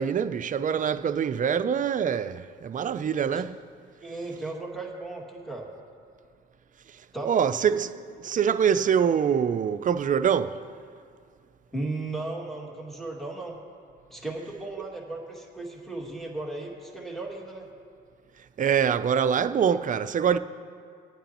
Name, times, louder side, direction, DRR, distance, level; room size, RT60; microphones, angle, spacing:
voice 1, 0.0-3.6 6.9-10.6 18.4-20.4, right 7 dB, 40° right, 0.5 m, -25 dB
voice 2, 4.0-5.7 7.1-7.4 11.7-13.6 14.1-17.7, right 2 dB, ahead, 2.2 m, -35 dB
23.5 x 9.1 x 3.0 m
cardioid pair, 90°, 20 cm